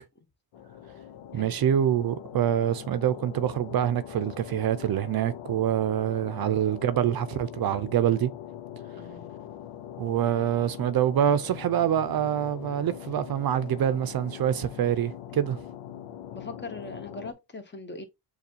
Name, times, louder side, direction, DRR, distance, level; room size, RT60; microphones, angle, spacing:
sound 1, 0.5-17.3, left 10 dB, 90° left, 0.6 m, -42 dB
voice 1, 1.3-8.3 10.0-15.6, right 10 dB, 55° right, 0.5 m, -25 dB
voice 2, 9.0-9.3 15.3-15.5 16.3-18.0, left 3 dB, 25° left, 0.7 m, -41 dB
6.7 x 2.3 x 2.7 m
cardioid pair, 115°, 44 cm